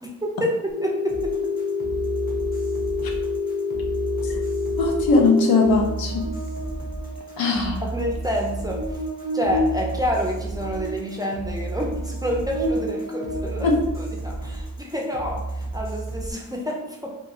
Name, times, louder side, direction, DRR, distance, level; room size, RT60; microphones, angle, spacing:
voice 1, 0.0-1.5 7.4-7.5 7.8-9.0 9.3-13.7 14.0-17.1, equal, 10° right, -1 dB, 0.3 m, -28 dB
Telephone, 0.7-5.7, left 5 dB, 45° left, 1.4 m, -27 dB
sound 1, 1.1-16.3, right 2 dB, 25° left, 0.7 m, -33 dB
voice 2, 4.8-6.2 7.4-7.8 13.6-13.7, left 3 dB, 85° left, 2 dB, 0.6 m, -20 dB
Buzz, 5.2-14.6, equal, 85° right, 0.6 m, -33 dB
2.9 x 2.3 x 2.7 m, 0.87 s
wide cardioid pair, 130°, 35 cm